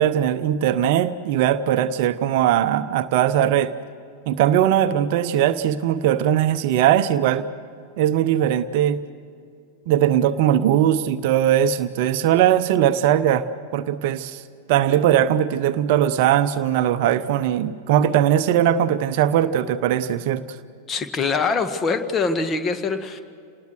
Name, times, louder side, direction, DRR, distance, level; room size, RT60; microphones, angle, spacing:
voice 1, 0.0-3.7 4.3-7.5 8.0-9.0 9.9-13.5 13.7-14.4 14.7-20.6, right 10 dB, 50° right, 12 dB, 0.8 m, -20 dB
voice 2, 20.9-23.2, left 4 dB, 25° left, 9 dB, 1.6 m, -23 dB
28.5 x 20.0 x 6.4 m, 2.4 s
figure-of-eight pair, 90°, 0 cm